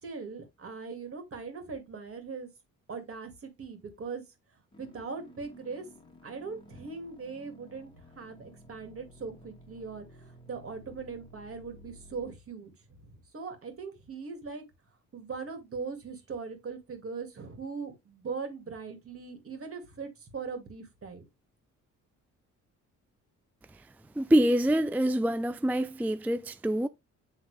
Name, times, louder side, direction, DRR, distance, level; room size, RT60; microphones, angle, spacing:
voice 1, 0.0-2.5 2.9-4.2 4.8-5.9 6.2-14.6 15.1-21.3, right 5 dB, 45° right, 2.5 m, -40 dB
sound 1, 4.7-12.3, left 1 dB, 15° left, 1.6 m, -54 dB
voice 2, 24.2-26.9, right 1 dB, 5° right, 0.3 m, -25 dB
8.9 x 3.5 x 3.4 m
cardioid pair, 90°, 30 cm